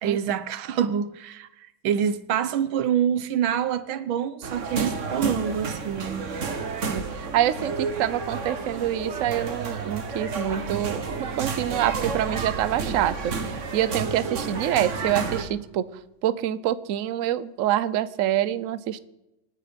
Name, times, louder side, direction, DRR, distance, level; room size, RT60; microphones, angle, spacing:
voice 1, 0.0-1.5 1.8-6.3, right 9 dB, 80° right, 1.6 m, -26 dB
sound 1, 4.4-15.4, right 4 dB, 40° right, 1.4 m, -31 dB
voice 2, 6.9-13.3 13.7-15.9 16.2-19.0, right 12 dB, 65° right, 0.8 m, -26 dB
27.0 x 9.9 x 5.2 m
omnidirectional pair, 2.2 m